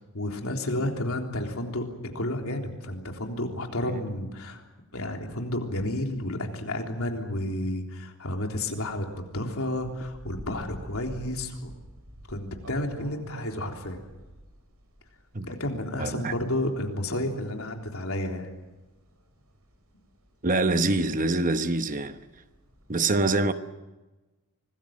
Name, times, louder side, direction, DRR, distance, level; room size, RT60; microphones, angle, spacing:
voice 1, 0.1-4.6 4.9-11.7 12.3-14.0 15.4-18.5, left 1 dB, 70° left, 3.6 m, -31 dB
sound 1, 9.0-22.9, equal, 80° right, 6.3 m, -49 dB
voice 2, 16.0-16.3 20.4-22.2 22.9-23.5, right 2 dB, 35° right, 1.1 m, -25 dB
26.0 x 19.5 x 7.6 m
head